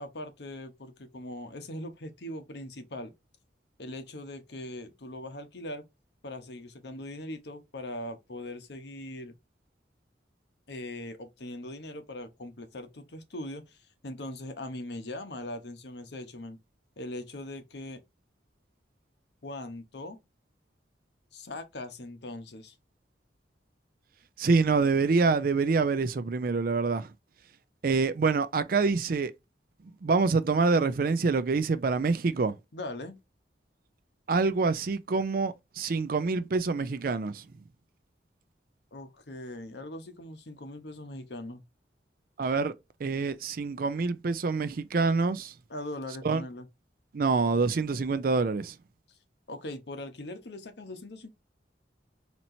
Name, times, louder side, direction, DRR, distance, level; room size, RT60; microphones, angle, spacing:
voice 1, 0.0-3.1 3.8-5.8 6.2-9.4 10.7-16.6 17.0-18.0 19.4-20.2 21.3-22.8 32.7-33.2 38.9-41.6 45.7-46.7 49.1-49.2 49.5-51.3, left 1 dB, 70° left, 0.9 m, -40 dB
voice 2, 24.4-27.1 27.8-29.3 30.0-32.5 34.3-37.4 42.4-42.7 43.0-45.5 46.2-46.4 47.1-48.7, right 4 dB, 50° right, 0.4 m, -26 dB
4.2 x 2.9 x 2.6 m
head